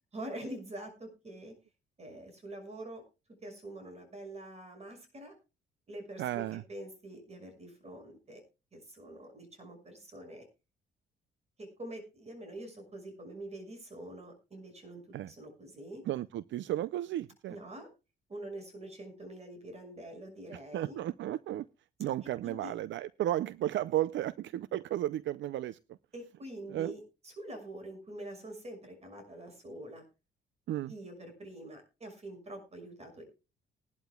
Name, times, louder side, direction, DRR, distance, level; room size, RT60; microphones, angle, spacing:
voice 1, 0.1-1.5 2.0-3.0 3.4-5.3 5.9-8.4 8.7-10.5 11.6-15.0 15.3-16.0 17.5-17.9 18.3-21.0 22.4-22.7 26.1-30.0 30.9-33.2, right 1 dB, 35° right, 6.1 m, -45 dB
voice 2, 6.2-6.6 15.1-15.3 16.1-17.6 20.7-21.7 22.0-25.8 26.7-27.0 30.7-30.9, right 13 dB, 70° right, 0.5 m, -33 dB
20.0 x 12.0 x 2.3 m
cardioid pair, 90°, 20 cm